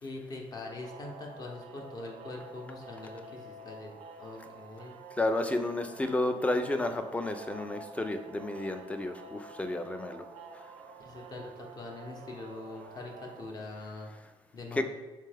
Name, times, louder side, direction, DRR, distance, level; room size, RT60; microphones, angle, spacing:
voice 1, 0.0-5.0 11.0-14.1 14.5-14.8, left 2 dB, 40° left, 1 dB, 0.8 m, -43 dB
sound 1, 0.8-13.5, right 4 dB, 85° right, 0.4 m, -49 dB
voice 2, 5.2-10.2 14.7-14.8, left 2 dB, 10° left, 7 dB, 0.3 m, -31 dB
3.6 x 3.3 x 3.3 m, 1.2 s
cardioid pair, 115°, 11 cm